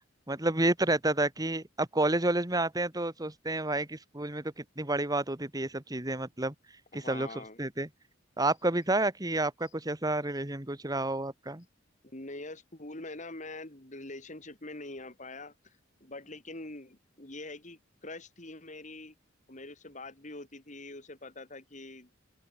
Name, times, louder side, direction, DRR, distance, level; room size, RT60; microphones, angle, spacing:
voice 1, 0.3-6.5 6.9-7.3 7.6-7.9 8.4-11.6, right 2 dB, 20° right, 1.8 m, -30 dB
voice 2, 6.9-7.7 12.0-15.7 16.0-19.1 19.5-22.1, left 2 dB, 40° left, 3.4 m, -44 dB
open air
head